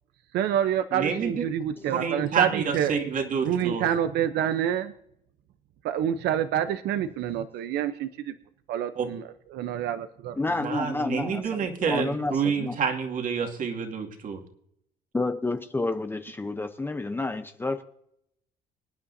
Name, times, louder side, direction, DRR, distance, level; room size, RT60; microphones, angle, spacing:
voice 1, 0.3-2.9 3.4-4.9 5.8-8.3 8.7-10.4, right 10 dB, 80° right, 10 dB, 0.8 m, -27 dB
voice 2, 0.9-1.4 1.9-3.8 9.0-9.1 10.6-14.4, right 6 dB, 50° right, 2 dB, 2.4 m, -28 dB
voice 3, 10.4-12.8 15.1-17.8, left 2 dB, 10° left, 8 dB, 0.8 m, -30 dB
25.5 x 9.7 x 2.8 m, 0.73 s
cardioid pair, 110°, 17 cm